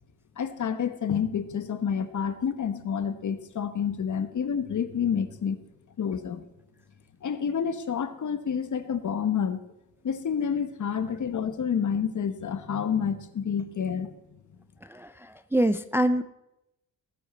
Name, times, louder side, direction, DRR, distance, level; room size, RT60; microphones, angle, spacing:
voice 1, 0.4-5.6 6.0-6.4 7.2-9.6 10.0-14.1, left 7 dB, 55° left, 11 dB, 1.1 m, -29 dB
voice 2, 14.8-16.2, right 1 dB, 5° right, 12 dB, 0.4 m, -25 dB
18.5 x 9.2 x 4.2 m, 0.90 s
cardioid pair, 105°, 36 cm